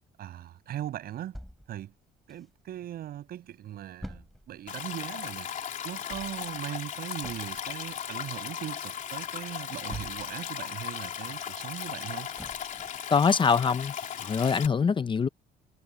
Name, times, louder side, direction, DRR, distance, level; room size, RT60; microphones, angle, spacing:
voice 1, 0.2-1.4 1.7-1.9 2.3-5.5 5.8-12.3, right 12 dB, 65° right, 7.9 m, -39 dB
sound 1, 1.3-2.9 3.3-3.4 3.5-10.6 10.9-13.1 13.5-13.6 14.0-14.1, equal, ahead, 6.3 m, -47 dB
Stream, 4.7-14.7, left 8 dB, 50° left, 3.5 m, -37 dB
voice 2, 13.1-13.9 14.2-15.3, left 6 dB, 30° left, 0.8 m, -24 dB
cardioid pair, 110°, 17 cm